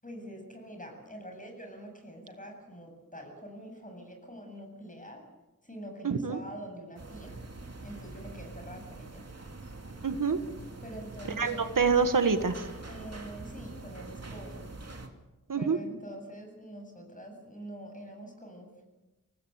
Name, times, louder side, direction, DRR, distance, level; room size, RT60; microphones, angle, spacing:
voice 1, 0.0-5.2 5.6-7.4 7.8-9.3 10.8-11.7 12.8-14.7 15.6-18.8, equal, 25° left, 3 dB, 7.9 m, -45 dB
voice 2, 6.0-6.4 10.0-10.4 11.4-12.6 15.5-15.8, right 5 dB, 85° right, 8 dB, 1.6 m, -26 dB
sound 1, 7.0-15.1, right 3 dB, 50° right, 2.8 m, -44 dB
25.5 x 18.5 x 8.2 m, 1.1 s
wide cardioid pair, 80°, 31 cm